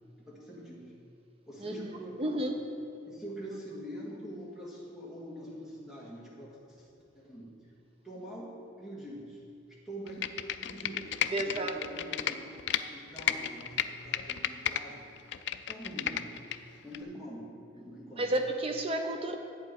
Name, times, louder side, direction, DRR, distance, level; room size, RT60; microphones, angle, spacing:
voice 1, 0.2-0.9 1.5-2.4 3.1-6.9 7.1-7.5 8.0-8.5 8.8-9.4 9.7-10.3 10.6-15.2 15.7-16.3 16.8-17.5 17.7-18.3, equal, ahead, -7 dB, 2.0 m, -44 dB
voice 2, 1.6-1.9 2.2-2.5 11.3-11.8 18.2-19.4, right 1 dB, 30° right, 4 dB, 0.6 m, -31 dB
Computer keyboard, 10.1-12.8 13.2-14.8 15.2-16.6 16.9-17.0, left 10 dB, 60° left, 0.4 m, -32 dB
11.0 x 8.3 x 4.7 m, 2.5 s
head